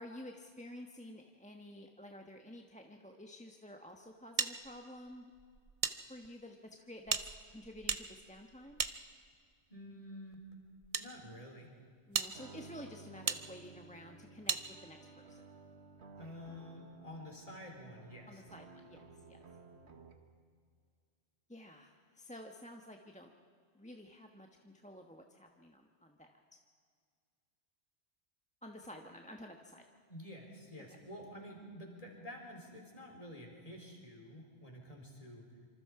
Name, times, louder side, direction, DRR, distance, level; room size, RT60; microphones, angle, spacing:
voice 1, 0.0-5.3 6.1-8.8 12.1-15.0 15.3-15.4 18.3-19.4 21.5-23.3 23.7-26.6 28.6-29.8, left 1 dB, 5° left, 3 dB, 1.2 m, -51 dB
sound 1, 4.4-6.0 6.2-6.3 7.0-9.5 10.3-11.1 11.6-11.7 12.1-12.3 13.3-13.4 14.5-14.6, right 5 dB, 35° right, 0.8 m, -37 dB
voice 2, 9.7-10.4 11.0-11.7 16.2-18.4 30.1-35.5, left 1 dB, 35° left, 0 dB, 4.5 m, -49 dB
sound 2, 12.3-20.4, right 3 dB, 85° right, 1.9 m, -56 dB
26.5 x 26.0 x 4.9 m, 2.1 s
omnidirectional pair, 1.1 m